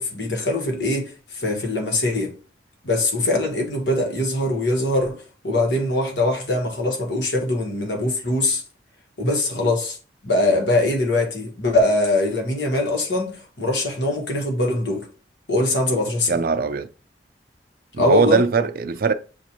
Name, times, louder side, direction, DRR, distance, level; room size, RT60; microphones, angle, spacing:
voice 1, 0.0-2.3 2.8-8.6 9.2-10.0 10.2-15.1 15.5-16.4 18.0-18.4, left 2 dB, 90° left, 1.3 m, -22 dB
voice 2, 16.3-16.9 17.9-19.1, right 4 dB, 55° right, 0.4 m, -20 dB
7.1 x 2.5 x 2.9 m
head